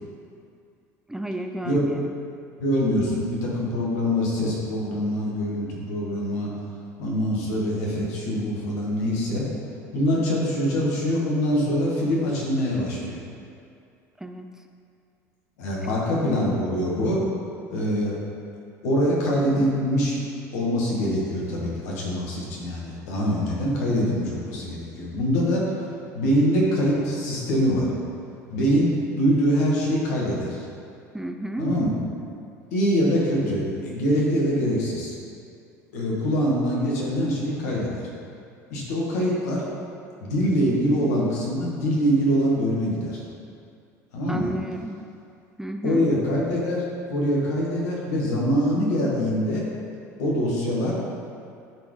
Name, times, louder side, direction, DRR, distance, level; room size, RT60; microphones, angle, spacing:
voice 1, 1.1-2.1 14.2-14.5 15.8-16.0 31.1-31.7 44.3-45.0 45.6-46.1, right 1 dB, 5° right, 5 dB, 0.4 m, -32 dB
voice 2, 2.6-6.5 7.0-9.5 9.9-13.2 15.6-17.2 17.7-18.2 18.8-20.2 20.5-25.8 26.1-27.9 28.5-30.7 31.6-31.9 32.7-35.1 35.9-38.0 38.7-39.6 40.2-43.2 44.1-44.5 45.8-46.8 47.1-49.6 50.2-50.9, equal, 75° left, -4 dB, 1.7 m, -24 dB
11.0 x 4.1 x 3.3 m, 2.4 s
hypercardioid pair, 75°, 9 cm